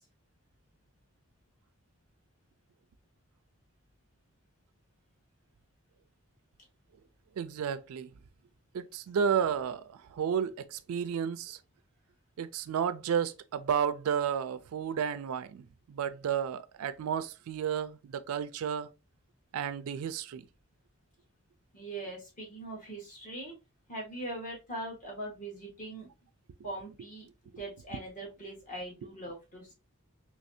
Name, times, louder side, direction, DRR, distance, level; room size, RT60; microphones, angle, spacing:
voice 1, 7.4-8.1 8.7-11.6 12.4-18.9 19.5-20.4, right 7 dB, 75° right, 0.3 m, -32 dB
voice 2, 21.7-23.5 23.9-26.1 26.6-27.3 27.6-29.7, right 1 dB, 35° left, 1.5 m, -41 dB
3.2 x 3.2 x 2.6 m
head